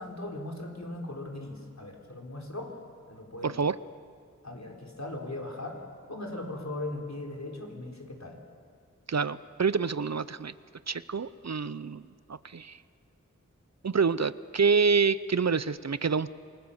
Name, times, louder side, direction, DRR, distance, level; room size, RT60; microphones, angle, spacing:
voice 1, 0.0-2.8 3.1-3.6 4.4-5.8 6.1-8.4, left 2 dB, 60° left, 0 dB, 4.0 m, -38 dB
voice 2, 3.4-3.8 9.1-10.5 10.9-12.0 12.3-12.8 13.8-16.3, right 5 dB, 60° right, 16 dB, 0.6 m, -27 dB
27.5 x 21.0 x 7.1 m, 2.1 s
wide cardioid pair, 45°, 31 cm